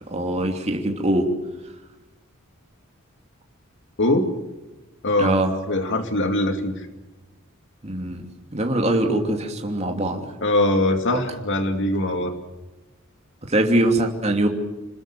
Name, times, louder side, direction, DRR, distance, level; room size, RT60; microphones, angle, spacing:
voice 1, 0.1-1.3 5.2-5.5 7.8-8.3 8.5-10.3 13.4-14.5, right 1 dB, 30° right, 2 dB, 2.9 m, -22 dB
voice 2, 4.0-4.3 5.0-5.4 5.7-6.9 10.4-12.3, left 1 dB, 60° left, 6 dB, 2.5 m, -22 dB
27.0 x 20.5 x 7.6 m, 1.1 s
head